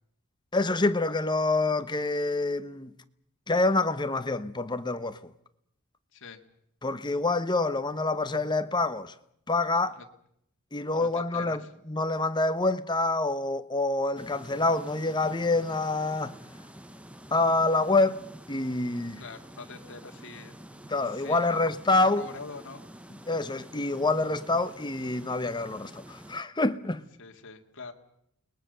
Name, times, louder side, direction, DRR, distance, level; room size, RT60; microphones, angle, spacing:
voice 1, 0.5-2.9 3.5-5.2 6.8-9.1 9.5-10.0 10.7-16.3 17.3-18.2 18.5-19.2 20.9-22.2 23.3-27.0, left 2 dB, 20° left, 1.0 m, -27 dB
voice 2, 10.9-11.7 19.2-20.5 21.1-21.6 21.9-23.0 27.2-27.9, left 4 dB, 60° left, 2.2 m, -44 dB
sound 1, 14.1-26.4, right 1 dB, 5° right, 0.9 m, -48 dB
29.5 x 20.5 x 6.8 m
head